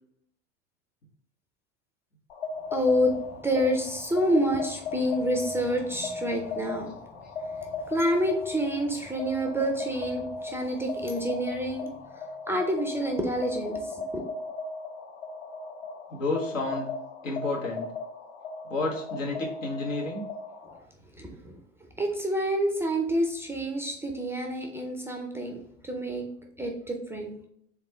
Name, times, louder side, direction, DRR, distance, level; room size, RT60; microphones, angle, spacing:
sound 1, 2.3-20.8, left 4 dB, 60° left, 0.9 m, -37 dB
voice 1, 2.7-3.2 3.4-6.9 7.9-11.9 12.5-14.2 21.1-21.6 22.0-26.2 26.6-27.3, equal, 5° right, 2 dB, 0.4 m, -28 dB
voice 2, 16.1-16.9 17.2-17.9 18.7-20.2, left 3 dB, 85° left, -2 dB, 1.3 m, -30 dB
3.7 x 3.5 x 3.1 m, 0.72 s
hypercardioid pair, 85°, 38 cm